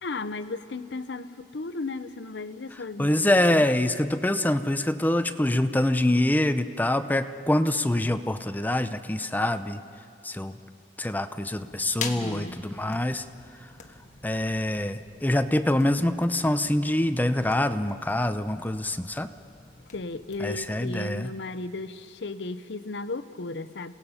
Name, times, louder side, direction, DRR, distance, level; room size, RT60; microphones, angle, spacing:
voice 1, 0.0-3.7 12.0-12.6 19.9-23.9, left 3 dB, 85° left, 12 dB, 0.7 m, -35 dB
voice 2, 3.0-9.8 10.2-10.6 11.0-13.2 14.2-19.3 20.4-21.3, left 1 dB, 10° left, 10 dB, 0.6 m, -25 dB
sound 1, 11.5-20.9, left 5 dB, 45° left, 1.5 m, -44 dB
28.0 x 17.5 x 5.6 m, 2.6 s
head